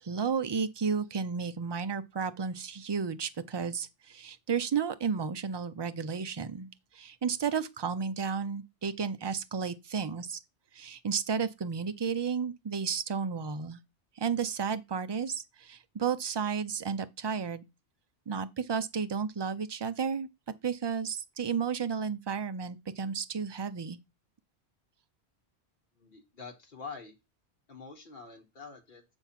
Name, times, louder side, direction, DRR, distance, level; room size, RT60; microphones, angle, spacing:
voice 1, 0.0-10.4 10.7-13.8 14.2-17.6 18.3-20.3 20.6-24.0, right 6 dB, 40° right, 0.4 m, -32 dB
voice 2, 26.0-27.1 27.7-29.0, left 5 dB, 50° left, 1.5 m, -46 dB
7.2 x 3.5 x 5.8 m
omnidirectional pair, 1.1 m